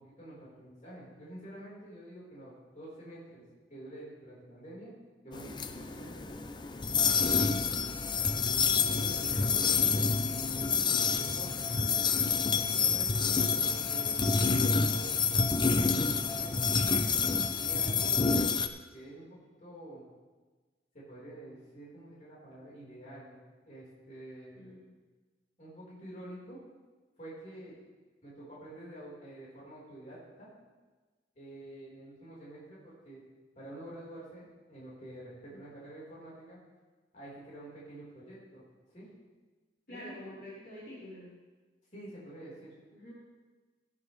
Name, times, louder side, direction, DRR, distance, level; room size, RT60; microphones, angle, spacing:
voice 1, 0.0-3.4 3.7-4.9 5.2-6.3 6.9-7.7 8.1-10.2 10.5-10.8 11.0-12.2 12.8-13.3 13.6-16.6 17.6-18.5 18.9-20.0 21.1-23.4 23.6-24.6 25.6-26.6 27.2-27.8 28.2-30.5 31.3-33.2 33.5-36.6 37.1-38.6 38.9-39.1 39.9-40.1 41.9-42.7, right 1 dB, 45° left, -7 dB, 4.4 m, -48 dB
sound 1, 5.3-18.7, left 5 dB, 25° left, 0.5 m, -28 dB
voice 2, 8.8-9.4 13.3-13.6 24.5-24.8 35.5-35.6 39.9-41.3 42.9-43.1, left 1 dB, 60° left, -8 dB, 4.2 m, -47 dB
17.5 x 9.7 x 3.3 m, 1.3 s
head